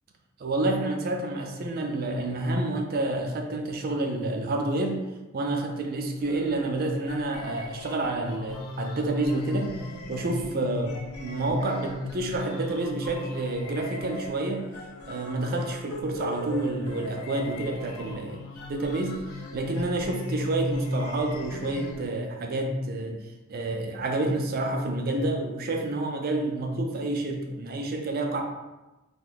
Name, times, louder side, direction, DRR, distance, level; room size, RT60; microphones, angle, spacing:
voice 1, 0.4-5.0 5.3-9.8 10.1-14.7 15.0-18.4 18.7-19.2 19.5-28.4, right 2 dB, 45° right, 3 dB, 0.4 m, -29 dB
sound 1, 6.2-22.1, left 1 dB, 80° left, 0.5 m, -37 dB
2.6 x 2.2 x 3.9 m, 1.1 s
head